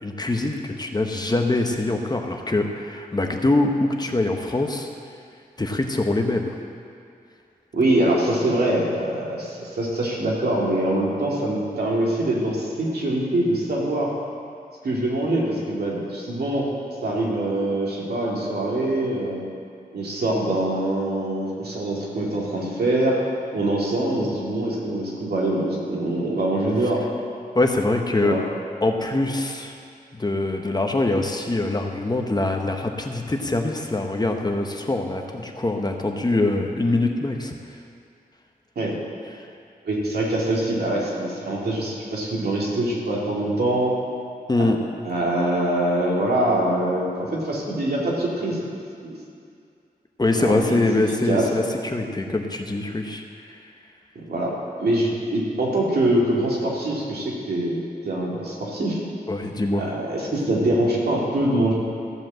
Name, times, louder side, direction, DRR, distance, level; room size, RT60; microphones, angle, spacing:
voice 1, 0.0-4.9 5.6-6.5 27.5-28.4 28.8-29.8 30.1-37.5 39.4-39.5 44.5-44.8 50.2-53.2 53.5-53.6 59.3-59.8, left 2 dB, 25° left, 3 dB, 1.0 m, -23 dB
voice 2, 7.7-14.1 14.8-16.7 17.0-19.4 19.9-23.2 23.5-27.0 28.2-28.4 38.8-38.9 39.8-43.9 44.6-44.7 45.0-48.7 49.0-49.1 50.4-51.5 54.1-54.5 54.8-59.0 59.8-61.7, right 1 dB, 85° right, -4 dB, 2.5 m, -24 dB
14.5 x 5.3 x 7.5 m, 2.4 s
wide cardioid pair, 95°, 16 cm